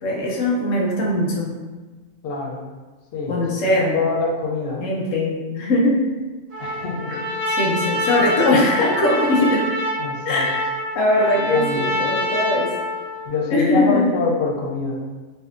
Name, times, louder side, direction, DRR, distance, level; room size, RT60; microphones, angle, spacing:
voice 1, 0.0-1.5 3.3-4.1 4.8-6.0 7.1-9.7 10.2-10.5 10.9-12.7 13.5-14.1, left 1 dB, 85° left, -2 dB, 0.9 m, -20 dB
voice 2, 2.2-2.6 3.1-3.4 3.9-4.8 6.6-7.2 10.0-10.5 11.5-11.9 13.2-15.0, left 4 dB, 60° left, -3 dB, 0.7 m, -25 dB
Trumpet, 6.5-13.3, left 1 dB, 50° right, 0.8 m, -25 dB
2.6 x 2.3 x 2.4 m, 1.3 s
omnidirectional pair, 1.3 m